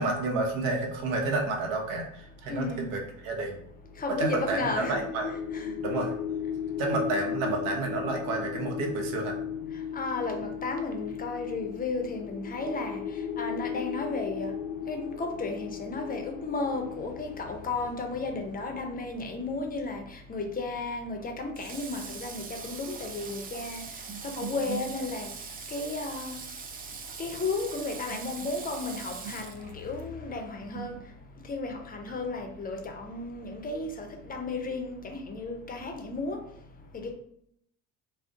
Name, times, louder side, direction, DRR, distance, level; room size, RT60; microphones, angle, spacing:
voice 1, 0.0-3.6 4.2-5.4 5.8-6.1 6.8-9.4 24.1-24.8 28.1-28.2 29.2-29.3 30.7-30.9, right 3 dB, 60° right, 2 dB, 0.8 m, -30 dB
voice 2, 2.5-2.8 4.0-5.0 5.5-5.7 9.9-13.0 13.4-14.5 14.9-23.8 24.2-25.3 25.7-26.3 27.2-30.9 31.5-36.4 37.0-37.1, left 3 dB, 25° left, 4 dB, 0.6 m, -33 dB
sound 1, 3.8-18.9, left 8 dB, 80° left, 0.5 m, -36 dB
Water / Water tap faucet, 21.6-30.1, right 5 dB, 25° right, 0.4 m, -42 dB
2.4 x 2.0 x 3.6 m, 0.71 s
hypercardioid pair, 65°, 37 cm